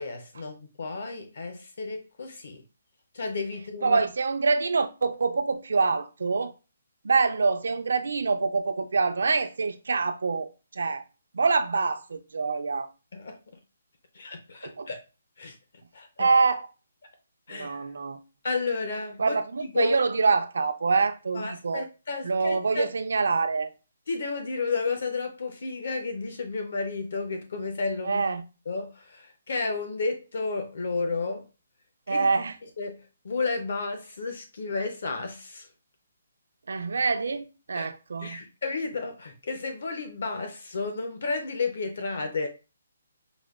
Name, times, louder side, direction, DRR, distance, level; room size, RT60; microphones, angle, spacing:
voice 1, 0.0-2.6 3.1-4.0 13.1-13.4 14.1-15.0 15.4-15.6 15.9-16.3 17.5-17.9 18.4-20.0 21.3-22.9 24.1-28.2 28.7-31.5 32.1-32.3 32.8-35.7 37.7-37.9 38.2-42.5, left 4 dB, 55° left, 0.5 m, -32 dB
voice 2, 3.8-6.5 7.0-11.0 11.3-12.9 14.6-14.9 16.2-16.7 17.5-18.2 19.2-21.9 22.2-23.7 28.0-28.4 32.1-32.6 36.7-38.4, right 4 dB, 75° right, 0.4 m, -25 dB
4.9 x 2.1 x 2.3 m
hypercardioid pair, 175°, 0 cm